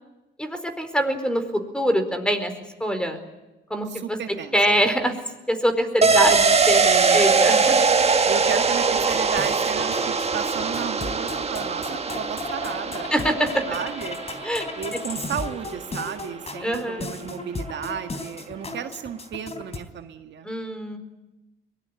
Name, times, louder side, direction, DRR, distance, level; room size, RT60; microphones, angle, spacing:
voice 1, 0.4-2.5 2.8-3.2 3.7-4.2 4.5-5.1 5.5-6.8 7.1-7.8 13.1-13.6 14.4-14.7 16.6-17.1 20.4-21.0, equal, 5° left, 8 dB, 4.5 m, -24 dB
voice 2, 3.9-4.5 6.8-7.2 8.3-13.1 13.7-14.2 14.8-20.5, right 8 dB, 65° right, 6 dB, 1.8 m, -33 dB
sound 1, 6.0-15.4 15.7-15.8, right 4 dB, 30° right, 1.7 m, -22 dB
sound 2, 9.0-19.8, left 2 dB, 30° left, 3.6 m, -36 dB
23.0 x 19.5 x 9.9 m, 1.0 s
cardioid pair, 90°, 20 cm